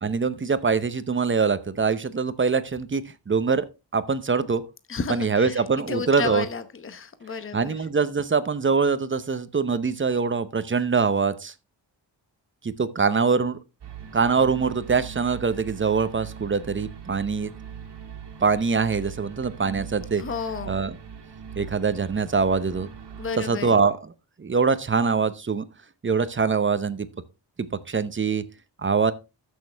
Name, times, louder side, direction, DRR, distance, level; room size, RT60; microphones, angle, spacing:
voice 1, 0.0-3.7 3.9-4.6 5.1-6.5 7.5-11.5 12.6-13.6 14.1-17.5 18.4-20.2 20.7-21.0 21.6-22.9 23.4-24.1 24.4-25.6 26.0-27.1 27.9-28.4 28.8-29.1, right 5 dB, 25° right, 0.8 m, -23 dB
voice 2, 4.9-5.6 5.9-7.8 20.1-20.8 23.2-23.8, left 5 dB, 30° left, 1.0 m, -32 dB
sound 1, 13.8-23.5, right 8 dB, 65° right, 2.0 m, -41 dB
13.5 x 6.5 x 3.4 m
wide cardioid pair, 125°, 43 cm